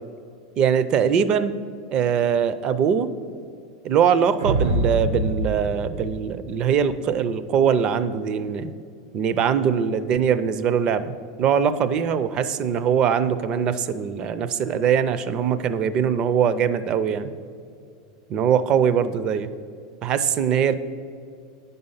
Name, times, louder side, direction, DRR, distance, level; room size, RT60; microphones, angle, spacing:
voice 1, 0.6-1.6 1.9-3.1 3.8-8.7 9.1-11.1 11.4-17.3 18.3-19.5 20.0-20.8, right 7 dB, 35° right, 13 dB, 0.4 m, -22 dB
sound 1, 4.4-6.9, right 2 dB, 85° right, 0.8 m, -25 dB
9.3 x 5.4 x 5.6 m, 2.4 s
supercardioid pair, 140°, 2 cm